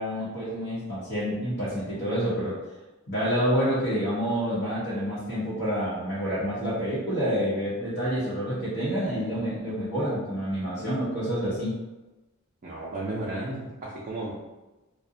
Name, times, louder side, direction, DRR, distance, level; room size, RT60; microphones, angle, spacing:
voice 1, 0.0-2.6 3.1-11.7, equal, 50° left, -11 dB, 0.8 m, -28 dB
voice 2, 12.6-14.3, right 2 dB, 40° right, -6 dB, 0.4 m, -33 dB
2.4 x 2.0 x 2.6 m, 1.1 s
head